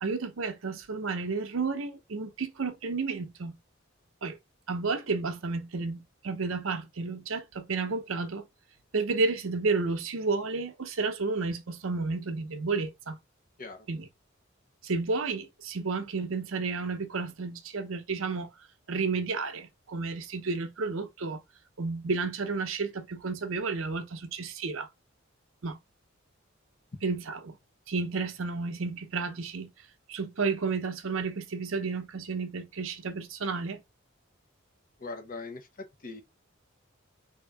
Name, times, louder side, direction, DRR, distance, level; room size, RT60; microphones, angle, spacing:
voice 1, 0.0-3.6 4.2-4.4 4.7-8.4 8.9-13.2 13.9-14.1 14.8-18.5 18.9-21.4 21.8-24.9 25.6-25.8 27.0-27.6 27.9-29.7 30.1-33.8, right 4 dB, 75° right, 0.7 m, -31 dB
voice 2, 35.0-36.2, left 3 dB, 45° left, 0.8 m, -41 dB
3.6 x 2.7 x 3.4 m
head